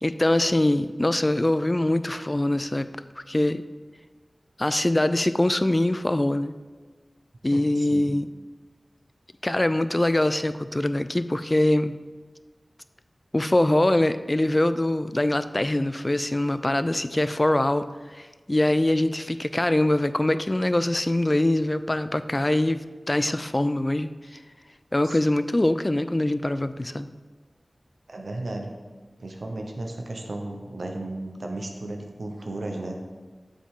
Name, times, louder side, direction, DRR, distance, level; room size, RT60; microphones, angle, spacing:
voice 1, 0.0-2.9 3.3-3.6 4.6-6.5 7.4-8.3 9.4-12.0 13.3-17.8 18.1-24.4 24.9-27.1, left 1 dB, 25° left, 12 dB, 0.3 m, -23 dB
voice 2, 7.5-8.1 25.0-25.2 28.1-28.7 29.2-33.0, right 2 dB, 75° right, 2 dB, 0.9 m, -34 dB
7.1 x 7.1 x 3.7 m, 1.4 s
wide cardioid pair, 65°, 0 cm